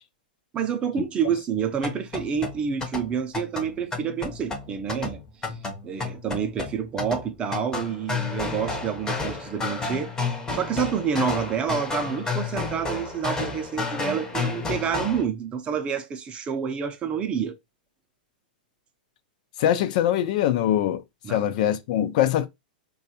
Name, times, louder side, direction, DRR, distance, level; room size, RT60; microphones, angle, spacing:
voice 1, 0.5-5.5 5.8-10.1 10.5-17.6 21.2-21.4, right 7 dB, 20° right, 0.6 m, -28 dB
sound 1, 1.7-15.2, left 3 dB, 15° left, 0.7 m, -31 dB
voice 2, 19.6-22.5, left 11 dB, 55° left, 0.5 m, -23 dB
3.9 x 2.3 x 2.7 m
hypercardioid pair, 140°, 5 cm